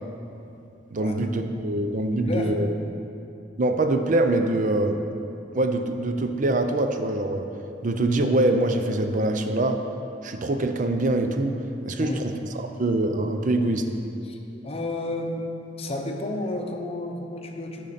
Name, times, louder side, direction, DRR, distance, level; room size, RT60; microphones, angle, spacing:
voice 1, 0.9-2.7 3.6-5.0 5.5-7.5 7.8-9.8 10.2-11.6 11.9-12.3 12.6-13.8, right 2 dB, 45° right, 6 dB, 0.5 m, -24 dB
voice 2, 2.1-2.6 12.0-12.3 14.2-14.4 14.6-15.5 15.8-17.9, left 1 dB, 30° left, 2 dB, 0.8 m, -31 dB
8.8 x 5.4 x 5.7 m, 2.7 s
head